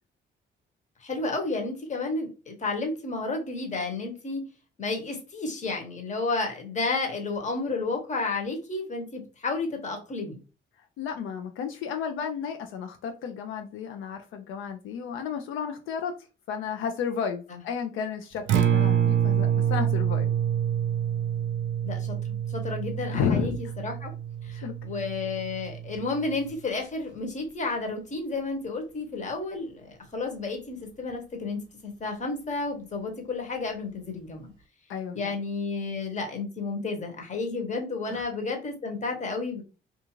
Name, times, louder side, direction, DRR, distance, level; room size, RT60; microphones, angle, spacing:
voice 1, 1.0-4.4 4.8-10.4 17.5-17.6 18.5-18.6 21.8-24.1 24.4-34.5 35.1-39.6, left 3 dB, 35° left, 3 dB, 1.0 m, -32 dB
voice 2, 11.0-16.1 16.5-20.3 23.1-23.6 24.6-24.7 34.9-35.3 38.1-38.2, left 7 dB, 85° left, 5 dB, 0.4 m, -32 dB
Acoustic guitar, 18.4-26.5, right 9 dB, 70° right, 0.4 m, -27 dB
2.4 x 2.4 x 2.9 m, 0.33 s
cardioid pair, 90°, 20 cm